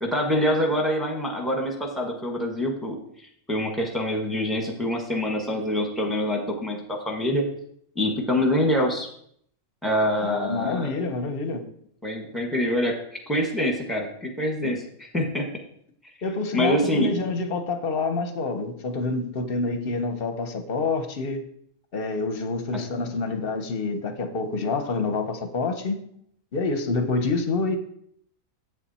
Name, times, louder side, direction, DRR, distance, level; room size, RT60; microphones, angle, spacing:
voice 1, 0.0-3.0 3.5-7.4 7.9-9.1 9.8-10.9 12.0-12.9 13.3-14.8 15.1-15.4 16.5-17.1 22.7-22.8, equal, ahead, 1 dB, 1.4 m, -25 dB
voice 2, 10.2-11.6 14.6-14.7 16.2-21.4 21.9-26.0 26.5-27.8, left 3 dB, 50° left, 8 dB, 1.0 m, -27 dB
8.2 x 7.0 x 4.2 m, 0.67 s
omnidirectional pair, 1.4 m